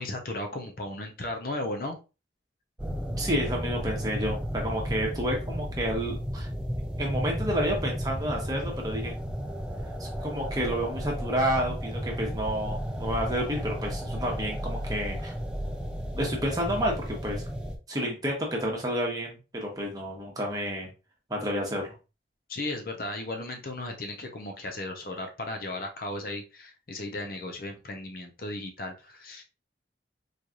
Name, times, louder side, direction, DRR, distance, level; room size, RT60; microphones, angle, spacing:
voice 1, 0.0-2.0 22.5-29.4, left 2 dB, 55° left, 3 dB, 0.7 m, -35 dB
sound 1, 2.8-17.8, equal, 5° right, 0.4 m, -33 dB
voice 2, 3.2-6.5 7.0-9.1 10.0-15.3 16.1-17.4 17.9-20.9 21.3-21.9, equal, 20° right, -1 dB, 1.1 m, -30 dB
4.1 x 3.2 x 2.4 m, 0.30 s
head